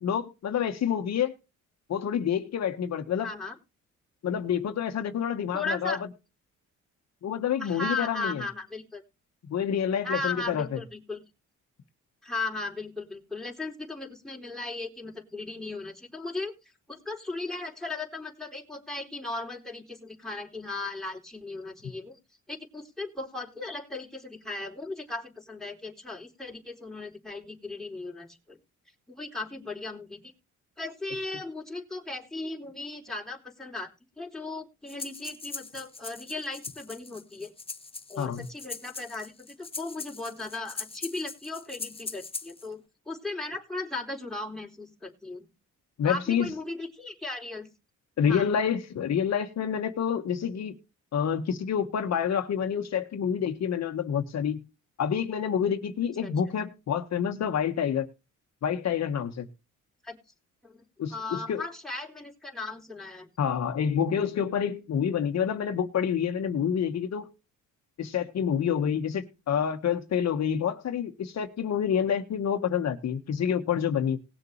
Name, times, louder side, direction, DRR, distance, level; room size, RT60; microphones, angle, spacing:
voice 1, 0.0-1.3 1.9-3.3 4.2-6.0 7.2-8.4 9.5-10.8 38.2-38.5 46.0-46.5 48.2-50.7 51.1-54.6 55.0-58.1 58.6-59.5 61.0-61.6 63.4-67.3 68.0-74.2, left 8 dB, 60° left, 1.7 m, -28 dB
voice 2, 3.2-3.5 5.5-6.0 7.6-9.0 10.0-11.2 12.2-16.5 16.9-22.2 22.5-28.6 29.2-30.2 30.8-37.5 38.1-45.5 46.0-47.7 48.2-48.5 56.2-56.3 60.0-60.2 60.6-60.8 61.1-63.3, left 3 dB, ahead, 4.1 m, -37 dB
Breathing, 34.9-42.7, left 4 dB, 20° left, 1.2 m, -41 dB
20.0 x 6.9 x 3.3 m
cardioid pair, 90°, 30 cm